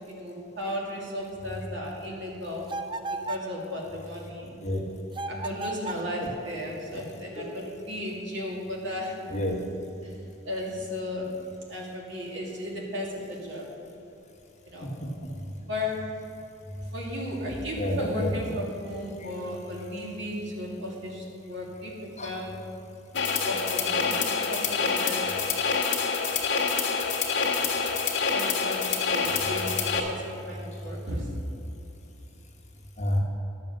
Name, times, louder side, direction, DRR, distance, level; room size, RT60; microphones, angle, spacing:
voice 1, 0.1-2.7 3.1-4.6 5.3-9.4 10.0-10.1 10.5-11.3 11.7-13.7 14.6-14.9 15.7-16.0 16.9-22.5 23.4-24.2 24.5-25.2 28.3-31.3, left 1 dB, 70° right, -3 dB, 2.4 m, -35 dB
sound 1, 2.7-3.5 5.1-6.1, right 2 dB, 25° right, 0.3 m, -34 dB
voice 2, 14.8-15.3 17.8-18.3 22.2-22.4 33.0-33.2, left 1 dB, 35° left, -2 dB, 1.6 m, -29 dB
sound 2, 23.1-30.0, left 5 dB, 65° left, 1.5 m, -26 dB
11.5 x 7.5 x 6.6 m, 2.9 s
head